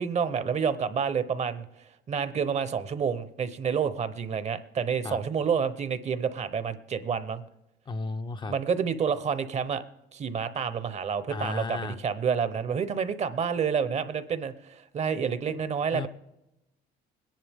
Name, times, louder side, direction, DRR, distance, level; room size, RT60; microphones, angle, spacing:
voice 1, 0.0-1.7 2.1-7.4 8.5-9.8 10.1-16.1, right 6 dB, 40° right, 13 dB, 0.9 m, -29 dB
voice 2, 7.9-8.5 11.3-12.0 15.9-16.1, left 3 dB, 25° left, 8 dB, 0.6 m, -33 dB
20.5 x 10.5 x 3.6 m, 0.89 s
cardioid pair, 110°, 17 cm